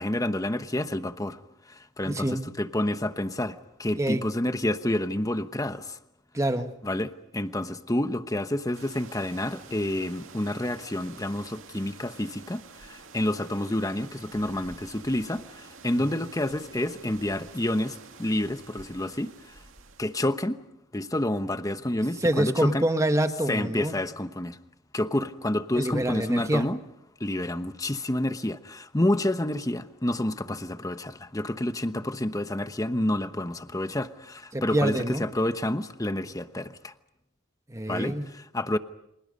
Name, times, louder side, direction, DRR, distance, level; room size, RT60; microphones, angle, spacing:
voice 1, 0.0-1.4 1.7-6.0 6.8-19.5 20.0-20.6 20.9-22.8 23.5-24.6 24.9-26.8 27.2-36.9 37.9-38.8, left 1 dB, 15° left, 10 dB, 1.0 m, -29 dB
voice 2, 2.0-2.4 4.0-4.2 6.3-6.7 22.2-24.0 25.7-26.7 34.5-35.3 37.7-38.3, right 1 dB, 15° right, 7 dB, 1.4 m, -26 dB
sound 1, 8.7-20.4, right 4 dB, 90° right, 2.3 m, -49 dB
29.5 x 26.5 x 5.3 m, 0.80 s
head